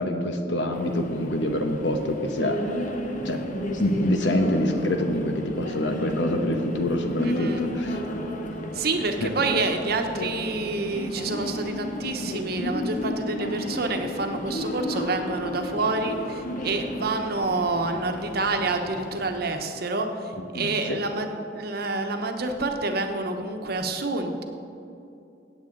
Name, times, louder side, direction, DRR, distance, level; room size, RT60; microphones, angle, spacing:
voice 1, 0.0-2.6 3.2-3.4 3.8-8.0 9.2-9.3 20.5-21.0, left 1 dB, 75° left, 5 dB, 1.1 m, -26 dB
sound 1, 0.7-19.4, left 1 dB, 45° left, 0.9 m, -33 dB
voice 2, 7.2-7.6 8.7-21.3 21.5-24.4, right 3 dB, 60° right, 5 dB, 1.0 m, -28 dB
16.5 x 8.2 x 3.9 m, 2.7 s
head